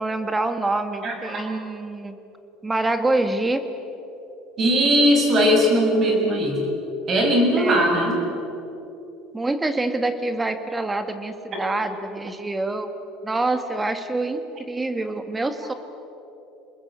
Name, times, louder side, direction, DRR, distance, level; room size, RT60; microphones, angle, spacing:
voice 1, 0.0-2.2 2.6-3.6 7.6-8.0 9.3-12.9 13.2-15.7, right 2 dB, 10° right, 8 dB, 2.0 m, -26 dB
voice 2, 4.6-6.6 7.1-8.2, equal, 35° right, 2 dB, 7.0 m, -19 dB
28.5 x 20.5 x 8.4 m, 3.0 s
cardioid pair, 130°, 0 cm